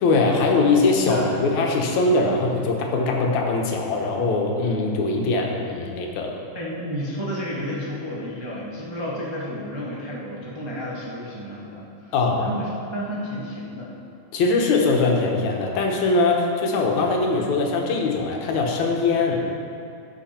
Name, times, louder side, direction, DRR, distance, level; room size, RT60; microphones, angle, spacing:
voice 1, 0.0-6.4 12.1-12.5 14.3-19.5, left 3 dB, 70° left, 0 dB, 2.5 m, -21 dB
voice 2, 1.0-1.4 6.5-13.9, equal, 45° right, -6 dB, 0.3 m, -32 dB
15.5 x 7.0 x 4.4 m, 2.6 s
omnidirectional pair, 3.5 m